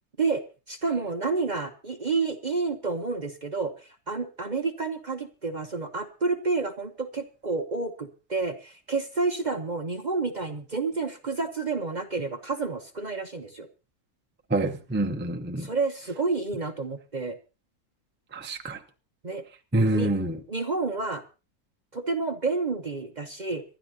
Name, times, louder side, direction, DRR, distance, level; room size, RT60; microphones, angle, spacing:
voice 1, 0.7-3.7 4.1-13.7 15.6-17.4 19.2-19.4 19.9-20.1 20.5-21.2 21.9-23.6, right 4 dB, 35° right, 0.9 m, -29 dB
voice 2, 14.5-15.7 18.3-18.8 19.7-20.4, right 1 dB, 10° right, 0.7 m, -26 dB
26.0 x 12.0 x 2.8 m
omnidirectional pair, 1.6 m